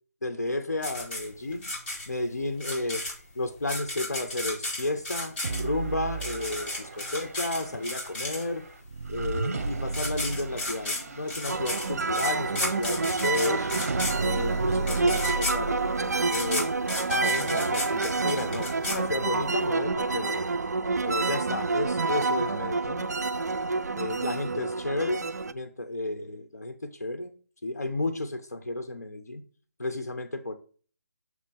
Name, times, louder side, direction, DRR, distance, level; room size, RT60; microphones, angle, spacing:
voice 1, 0.2-1.7 2.1-3.1 3.3-8.7 9.1-13.7 14.2-16.7 17.1-20.4 21.0-23.1 24.0-27.3 27.6-29.4 29.8-30.6, left 2 dB, 85° left, 6 dB, 0.8 m, -32 dB
sound 1, 0.8-8.7 9.6-9.7 9.9-19.6, left 2 dB, 40° left, 2.7 m, -34 dB
sound 2, 5.4-16.7, right 3 dB, 60° right, 1.0 m, -35 dB
sound 3, 11.5-25.5, right 3 dB, 80° right, 0.5 m, -28 dB
6.4 x 3.1 x 5.2 m, 0.41 s
figure-of-eight pair, 155°, 9 cm